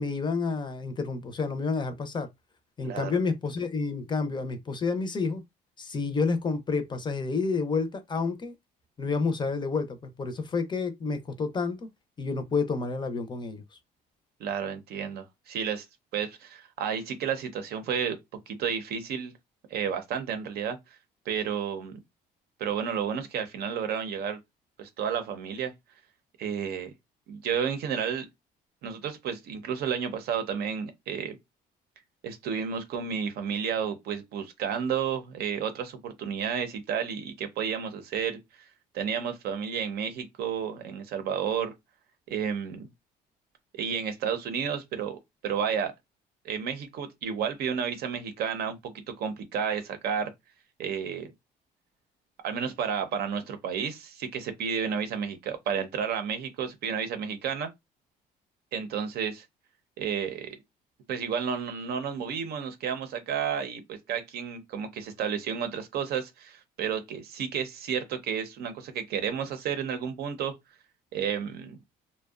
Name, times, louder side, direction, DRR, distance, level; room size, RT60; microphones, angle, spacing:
voice 1, 0.0-2.3 2.8-5.4 5.8-8.5 9.0-11.9 12.2-13.6, left 4 dB, 25° left, 0.5 m, -29 dB
voice 2, 2.8-3.2 14.4-15.9 16.1-18.2 18.5-19.3 19.7-20.8 21.3-22.0 22.6-24.4 24.8-25.7 26.4-26.9 27.3-28.3 28.8-31.4 32.2-38.4 38.9-41.7 42.3-42.9 43.7-45.9 46.4-50.3 50.8-51.3 52.4-57.7 58.7-59.4 60.0-60.6 61.1-70.5 71.1-71.8, right 7 dB, 70° right, 0.6 m, -31 dB
2.6 x 2.1 x 2.3 m
cardioid pair, 110°, 17 cm